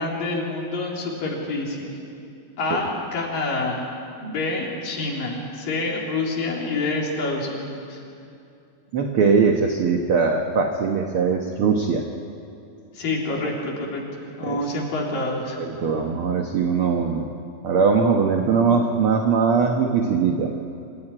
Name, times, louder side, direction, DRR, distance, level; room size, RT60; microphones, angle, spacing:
voice 1, 0.0-2.0 2.6-3.8 4.2-8.0 12.9-14.0 14.4-15.6, left 2 dB, 75° left, -2 dB, 5.2 m, -27 dB
voice 2, 8.9-12.0 14.4-14.6 15.6-17.3 17.6-20.5, right 5 dB, 60° right, 3 dB, 1.4 m, -21 dB
26.0 x 16.0 x 10.0 m, 2.6 s
omnidirectional pair, 4.0 m